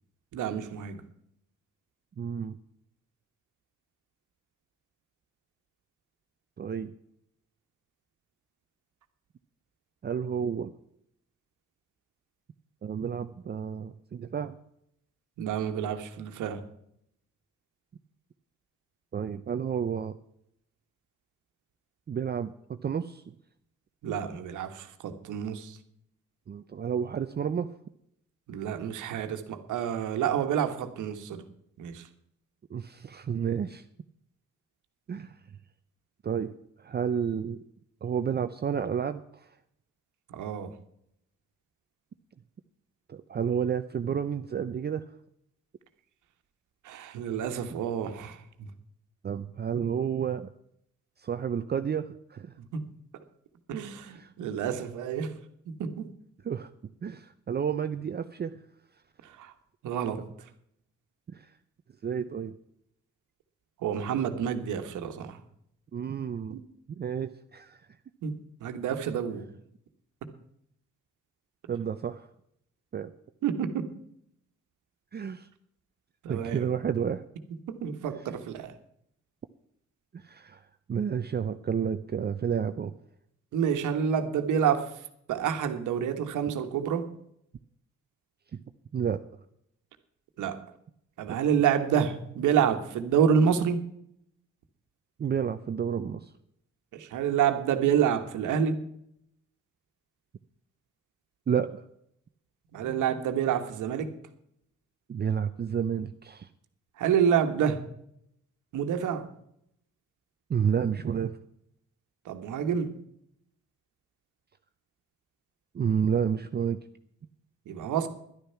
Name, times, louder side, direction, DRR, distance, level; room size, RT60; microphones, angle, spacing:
voice 1, 0.3-1.0 15.4-16.6 24.0-25.8 28.5-31.4 31.8-32.1 40.3-40.7 46.8-48.7 52.6-52.8 53.7-55.3 55.8-56.1 59.2-59.5 59.8-60.2 63.8-65.4 66.5-66.6 68.2-69.5 71.8-71.9 73.4-73.9 76.2-76.7 77.7-78.8 83.5-87.1 90.4-90.6 91.2-93.8 96.9-98.8 102.7-104.1 107.0-107.8 108.7-109.3 112.2-112.9 117.6-118.1, right 8 dB, 80° right, 7 dB, 1.5 m, -28 dB
voice 2, 2.2-2.6 6.6-6.9 10.0-10.7 12.8-14.6 19.1-20.2 22.1-22.5 22.8-23.3 26.5-27.7 32.7-33.8 35.1-35.3 36.2-37.6 38.0-39.5 43.1-45.0 49.2-50.5 51.2-52.5 54.1-54.3 56.4-56.7 57.0-58.6 61.3-61.4 62.0-62.5 65.9-66.6 66.9-67.8 71.7-72.3 72.9-73.1 75.1-75.5 76.3-77.2 80.1-80.6 80.9-82.9 88.9-89.2 95.2-96.3 101.5-101.8 105.1-106.5 110.5-111.4 115.7-116.8, right 7 dB, 35° right, 9 dB, 0.6 m, -30 dB
11.5 x 10.5 x 5.8 m, 0.74 s
cardioid pair, 90°, 30 cm